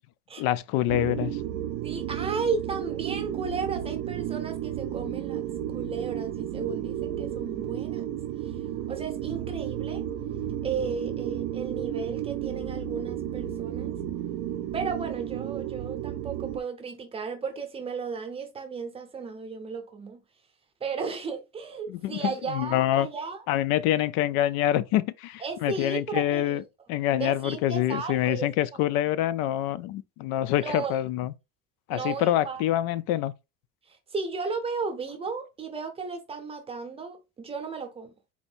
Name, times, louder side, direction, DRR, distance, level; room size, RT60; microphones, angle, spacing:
voice 1, 0.4-1.4 21.9-23.1 23.5-26.6 26.9-31.3 31.9-33.3, left 13 dB, 90° left, 0.5 m, -26 dB
sound 1, 0.9-16.6, right 11 dB, 50° right, 0.5 m, -33 dB
voice 2, 1.8-8.1 8.9-10.0 10.6-13.9 14.7-20.2 20.8-23.4 25.4-26.7 27.2-28.5 30.6-30.9 31.9-32.6 33.9-38.1, right 5 dB, 15° right, 0.6 m, -34 dB
4.2 x 2.6 x 4.3 m
cardioid pair, 180°, 35 cm